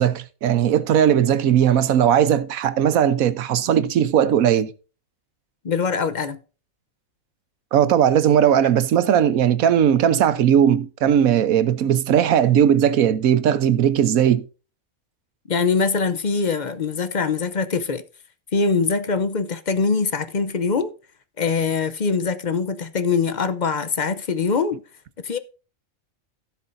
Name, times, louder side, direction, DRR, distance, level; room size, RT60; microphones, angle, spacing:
voice 1, 0.0-4.7 7.7-14.5, right 9 dB, 85° right, 1.2 m, -18 dB
voice 2, 5.6-6.4 15.5-18.0 18.5-20.9 21.4-24.8 25.2-25.4, left 5 dB, 45° left, 0.7 m, -23 dB
16.5 x 7.1 x 2.6 m
omnidirectional pair, 1.4 m